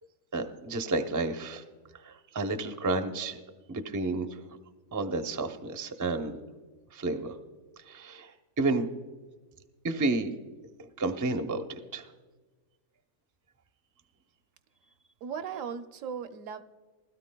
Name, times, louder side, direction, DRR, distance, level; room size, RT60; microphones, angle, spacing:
voice 1, 0.3-1.6 1.9-3.4 3.7-4.4 4.9-6.4 6.9-7.4 7.8-8.9 9.8-10.3 11.0-11.6 11.9-12.1, right 3 dB, 25° right, 6 dB, 0.4 m, -31 dB
voice 2, 15.2-16.6, right 7 dB, 75° right, 9 dB, 1.0 m, -37 dB
20.5 x 13.0 x 2.2 m, 1.3 s
omnidirectional pair, 1.4 m